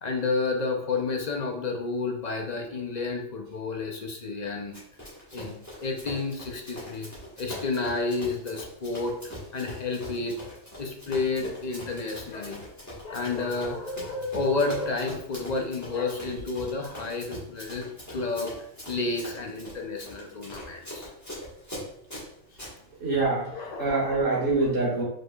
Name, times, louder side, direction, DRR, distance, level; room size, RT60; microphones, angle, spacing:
voice 1, 0.0-4.7 5.3-7.1 7.4-10.4 10.8-12.6 13.0-18.5 18.9-21.1 23.5-24.4, left 3 dB, 45° left, 2 dB, 0.6 m, -31 dB
Run, 4.7-22.7, equal, 15° left, 1.5 m, -42 dB
voice 2, 23.0-25.0, right 3 dB, 70° right, -7 dB, 2.5 m, -25 dB
4.7 x 4.4 x 2.4 m, 0.73 s
omnidirectional pair, 1.4 m